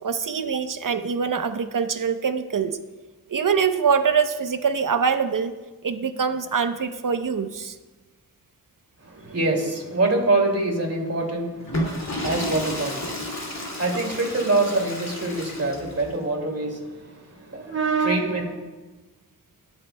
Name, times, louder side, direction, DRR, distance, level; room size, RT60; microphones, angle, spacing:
voice 1, 0.0-2.8 3.3-5.5 5.8-7.7, right 6 dB, 55° right, 9 dB, 0.8 m, -24 dB
voice 2, 9.0-18.6, right 2 dB, 40° right, 0 dB, 2.5 m, -25 dB
Water / Toilet flush, 11.6-16.1, left 1 dB, 45° left, 2.5 m, -31 dB
21.0 x 7.4 x 2.2 m, 1.2 s
cardioid pair, 45°, 38 cm